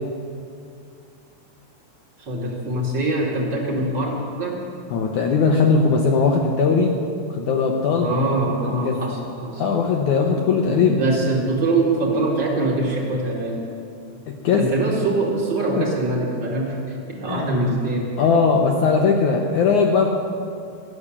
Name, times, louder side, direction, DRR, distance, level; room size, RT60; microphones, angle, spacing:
voice 1, 2.2-4.6 7.9-9.6 10.6-13.6 14.5-18.2, right 2 dB, 35° right, -2 dB, 2.4 m, -23 dB
voice 2, 4.9-6.9 7.4-8.1 8.8-9.0 9.6-11.0 14.3-14.7 15.8-15.9 17.3-17.5 18.2-20.1, left 5 dB, 80° left, 2 dB, 1.7 m, -19 dB
15.0 x 7.7 x 9.9 m, 2.4 s
omnidirectional pair, 4.7 m